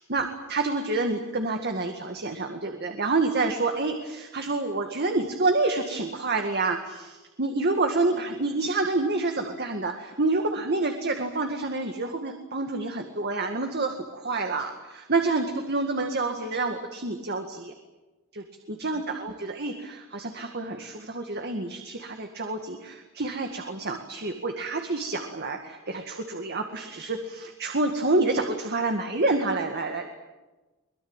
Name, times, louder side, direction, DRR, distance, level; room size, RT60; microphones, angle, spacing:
voice 1, 0.0-17.7 18.3-30.1, right 3 dB, 50° right, 5 dB, 2.0 m, -28 dB
23.5 x 21.5 x 9.0 m, 1.1 s
head